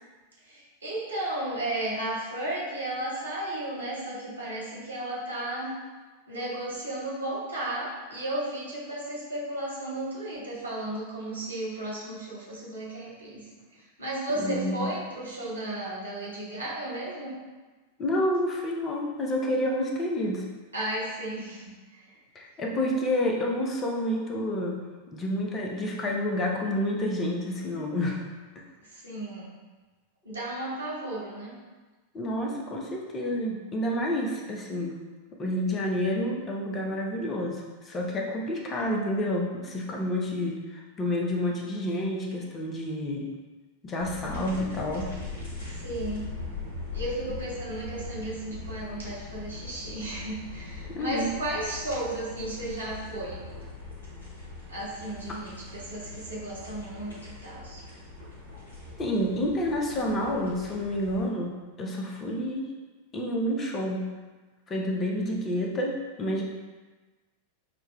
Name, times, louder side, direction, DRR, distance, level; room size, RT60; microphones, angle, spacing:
voice 1, 0.4-5.7 6.3-17.4 20.7-22.2 28.8-29.5 30.2-31.5 45.7-46.3 46.9-53.4 54.7-57.8, right 1 dB, 75° right, -8 dB, 1.1 m, -34 dB
voice 2, 14.4-14.9 18.0-20.5 22.3-28.2 28.6-28.7 32.1-35.0 35.4-43.3 43.8-45.1 50.9-51.3 59.0-62.7 63.1-64.1 64.7-66.4, left 1 dB, 25° left, 0 dB, 0.6 m, -29 dB
sound 1, 44.0-61.3, left 4 dB, 60° left, 1.4 m, -41 dB
5.9 x 2.2 x 2.3 m, 1.3 s
figure-of-eight pair, 90°, 0 cm